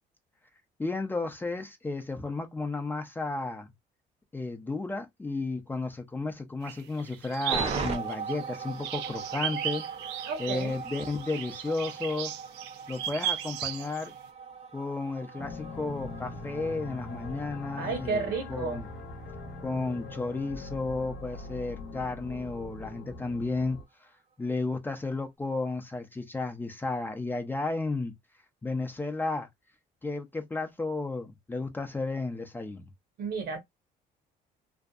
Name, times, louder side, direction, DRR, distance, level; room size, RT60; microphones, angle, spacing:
voice 1, 0.8-3.7 4.3-9.8 10.4-12.3 12.9-14.1 14.7-18.9 19.6-24.1 24.4-28.1 28.6-29.5 30.0-32.9, left 3 dB, 10° left, 0.4 m, -33 dB
sound 1, 6.6-14.1, right 10 dB, 85° right, 0.4 m, -36 dB
sound 2, 7.5-21.8 22.1-22.2, right 5 dB, 40° right, 0.6 m, -41 dB
voice 2, 10.3-10.8 17.8-18.8 33.2-33.6, right 5 dB, 70° right, 1.0 m, -32 dB
sound 3, 15.4-23.8, left 2 dB, 80° left, 0.6 m, -42 dB
2.6 x 2.2 x 2.3 m
cardioid pair, 110°, 17 cm